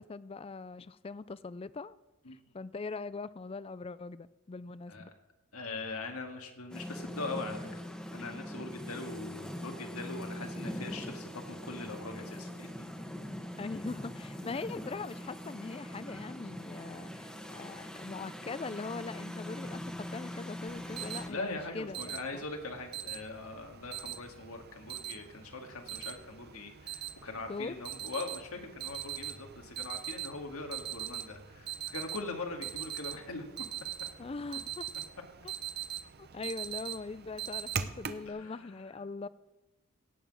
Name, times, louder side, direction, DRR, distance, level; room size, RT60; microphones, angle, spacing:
voice 1, 0.0-2.0 2.3-5.1 13.6-22.4 27.5-27.8 34.2-34.9 35.4-35.5 36.2-39.3, left 4 dB, 25° left, 0.3 m, -41 dB
voice 2, 5.5-7.8 8.1-12.9 21.3-33.7 38.3-38.8, left 3 dB, 75° left, 2.0 m, -41 dB
sound 1, 6.7-21.3, left 1 dB, 5° left, 1.3 m, -42 dB
Alarm, 20.7-38.3, right 10 dB, 45° right, 0.7 m, -42 dB
17.5 x 6.0 x 7.5 m
head